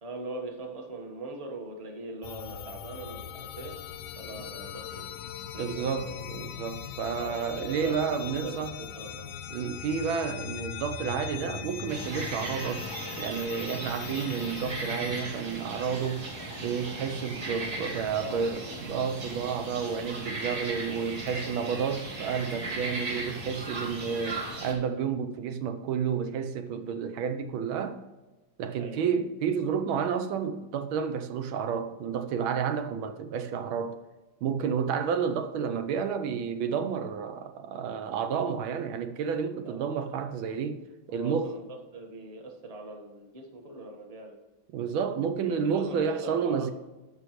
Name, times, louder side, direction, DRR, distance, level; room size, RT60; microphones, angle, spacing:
voice 1, 0.0-3.7 4.1-5.2 5.5-6.2 7.2-9.3 17.8-18.4 21.3-21.9 28.8-29.2 39.6-40.1 41.1-41.6 41.9-44.4 45.6-46.7, right 2 dB, 20° right, 1.2 m, -41 dB
sound 1, 2.2-15.2, left 9 dB, 85° left, 1.4 m, -40 dB
voice 2, 5.6-8.7 9.5-12.9 13.2-16.2 16.6-28.0 28.6-34.0 34.4-40.8 41.1-41.5 44.7-46.7, right 6 dB, 80° right, 1.5 m, -30 dB
sound 2, 11.9-24.7, right 2 dB, 50° right, 2.1 m, -37 dB
14.0 x 5.6 x 3.1 m
omnidirectional pair, 2.2 m